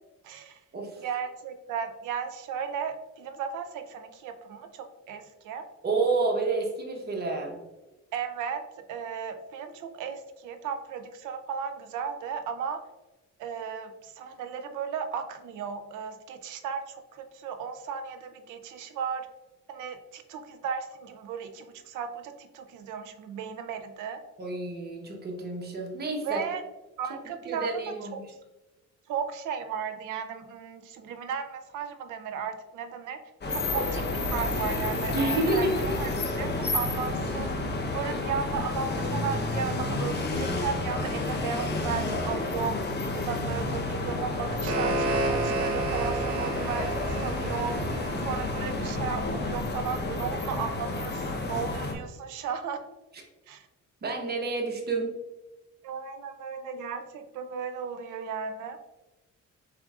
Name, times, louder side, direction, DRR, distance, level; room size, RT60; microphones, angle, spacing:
voice 1, 0.2-0.6 1.0-5.7 8.1-12.8 13.4-19.3 19.7-24.2 26.2-26.6 27.0-28.2 29.1-33.2 33.5-36.1 36.4-37.5 37.9-42.8 43.1-47.8 48.2-52.8 53.5-53.7 55.8-58.8, right 6 dB, 85° right, 8 dB, 0.6 m, -35 dB
voice 2, 5.8-7.6 24.4-26.4 27.5-28.2 35.1-35.7 54.0-55.1, right 3 dB, 35° right, 0 dB, 1.1 m, -29 dB
sound 1, 33.4-51.9, left 2 dB, 35° left, 0.9 m, -30 dB
sound 2, 44.3-49.3, right 2 dB, 50° right, 1.5 m, -32 dB
5.0 x 4.1 x 2.4 m, 1.1 s
cardioid pair, 90°, 30 cm